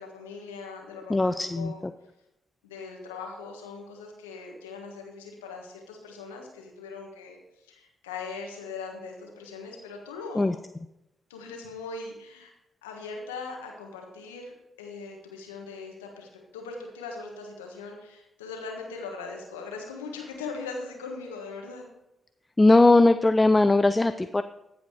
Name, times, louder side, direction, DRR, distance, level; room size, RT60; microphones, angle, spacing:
voice 1, 0.0-1.8 2.6-10.5 11.3-12.5 12.8-21.8, left 4 dB, 90° left, 1 dB, 1.4 m, -40 dB
voice 2, 1.1-1.7 10.4-10.5 22.6-24.4, left 2 dB, 25° left, 11 dB, 0.4 m, -19 dB
14.5 x 5.0 x 4.8 m, 0.89 s
hypercardioid pair, 40°, 0 cm